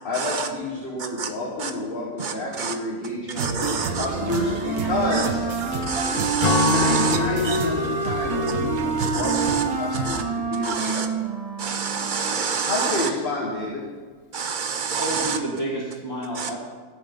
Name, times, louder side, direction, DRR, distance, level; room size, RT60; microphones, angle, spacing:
voice 1, 0.0-5.4 6.7-11.0 12.6-13.9, left 2 dB, 40° left, -2 dB, 1.7 m, -29 dB
voice 2, 2.2-2.7 3.4-4.0 5.9-7.2 7.5-7.6 9.1-9.6 10.1-10.2 10.6-11.1 11.6-13.1 14.3-15.4 16.4-16.5, right 6 dB, 40° right, 7 dB, 0.9 m, -27 dB
sound 1, 3.3-10.2, right 4 dB, 80° right, 1.3 m, -31 dB
Wind instrument woodwind instrument, 4.1-12.3, right 4 dB, 55° left, 4.3 m, -28 dB
Acoustic guitar / Strum, 6.4-10.0, left 5 dB, 80° left, 0.3 m, -27 dB
voice 3, 15.0-16.6, right 1 dB, 15° left, -4 dB, 1.6 m, -32 dB
12.5 x 8.3 x 5.2 m, 1.5 s
omnidirectional pair, 1.5 m